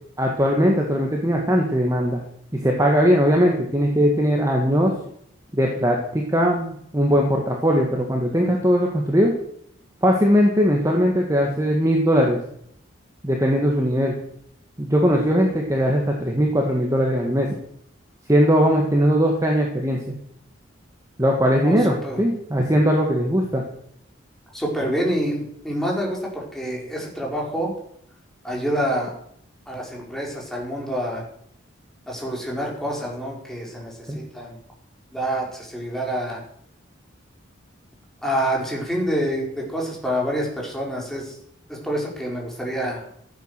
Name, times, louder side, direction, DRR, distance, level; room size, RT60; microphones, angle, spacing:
voice 1, 0.2-2.2 2.5-4.9 5.5-9.3 10.0-12.4 13.2-14.1 14.8-17.5 18.3-20.0 21.2-23.6 34.1-34.2, equal, 15° right, 0 dB, 1.9 m, -20 dB
voice 2, 21.6-22.2 24.5-27.7 28.4-29.1 29.7-31.2 32.1-34.6 35.1-36.4 38.2-41.4 41.7-43.1, equal, ahead, -3 dB, 4.7 m, -27 dB
15.5 x 9.4 x 6.8 m, 0.68 s
head